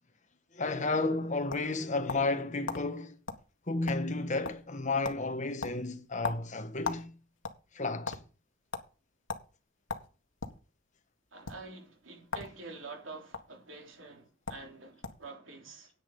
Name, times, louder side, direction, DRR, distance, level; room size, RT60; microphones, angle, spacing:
voice 1, 0.5-3.2 3.7-7.1 7.7-8.2, left 3 dB, 40° left, 1.5 m, -32 dB
sound 1, 0.9-2.4 2.7-2.8 3.3-3.4 3.7-4.2 4.4-4.8 5.0-5.2 5.6-7.1 7.4-8.2 8.7-8.9 9.3-9.5 9.9-10.6 11.4-11.6 12.3-12.5 12.8-13.4 14.1-14.2 14.5-14.7 15.0-15.3, left 4 dB, 75° left, 1.7 m, -37 dB
voice 2, 11.3-15.9, right 3 dB, 80° right, 3.3 m, -47 dB
10.0 x 9.1 x 5.4 m
head